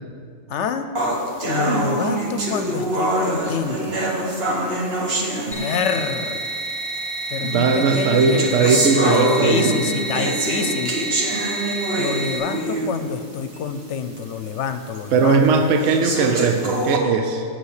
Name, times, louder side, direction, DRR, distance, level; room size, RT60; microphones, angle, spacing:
voice 1, 0.5-0.9 1.4-3.9 5.5-6.4 7.3-10.9 12.0-15.5, left 6 dB, 65° left, 9 dB, 0.9 m, -27 dB
sound 1, 1.0-6.1 7.0-7.1 7.8-13.1 13.5-13.6 14.2-14.3 14.9-15.0 15.8-17.0, right 1 dB, 50° right, 1.4 m, -24 dB
voice 2, 1.6-1.9 7.4-9.9 15.1-17.4, right 4 dB, 70° right, 5 dB, 1.0 m, -19 dB
sound 2, 5.5-12.4, right 2 dB, 5° left, 1.8 m, -29 dB
8.3 x 7.9 x 6.5 m, 2.2 s
omnidirectional pair, 1.4 m